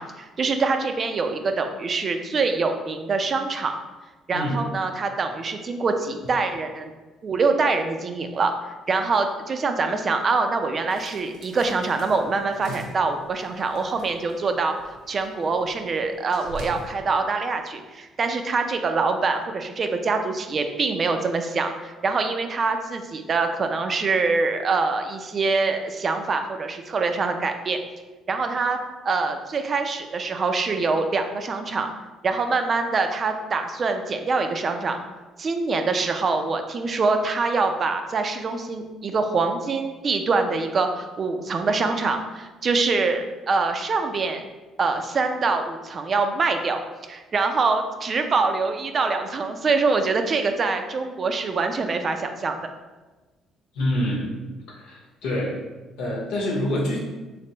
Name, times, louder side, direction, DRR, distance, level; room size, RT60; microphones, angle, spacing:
voice 1, 0.0-3.7 4.3-6.9 7.2-14.7 15.1-27.8 28.3-28.8 29.0-31.9 32.2-35.0 35.4-44.4 44.8-46.8 47.1-52.6, right 4 dB, 40° right, 6 dB, 0.4 m, -24 dB
sound 1, 10.9-16.9, right 1 dB, 85° right, 0.7 m, -43 dB
voice 2, 53.7-54.3 54.7-55.5 56.0-57.0, left 1 dB, 85° left, -3 dB, 0.9 m, -26 dB
3.4 x 3.3 x 2.9 m, 1.2 s
cardioid pair, 90°, 0 cm